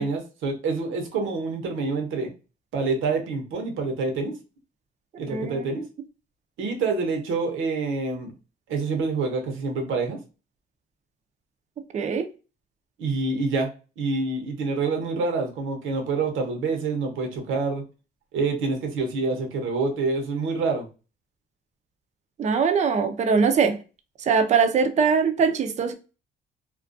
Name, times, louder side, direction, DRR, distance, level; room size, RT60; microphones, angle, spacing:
voice 1, 0.0-2.3 2.7-4.4 5.2-5.9 6.6-8.3 8.7-10.2 13.0-13.7 14.0-17.8 18.3-20.9, right 3 dB, 85° right, 0.8 m, -27 dB
voice 2, 5.3-5.7 11.9-12.3 22.4-23.8 24.2-25.9, right 5 dB, 35° right, 0.4 m, -22 dB
2.4 x 2.1 x 2.5 m
cardioid pair, 90°, 20 cm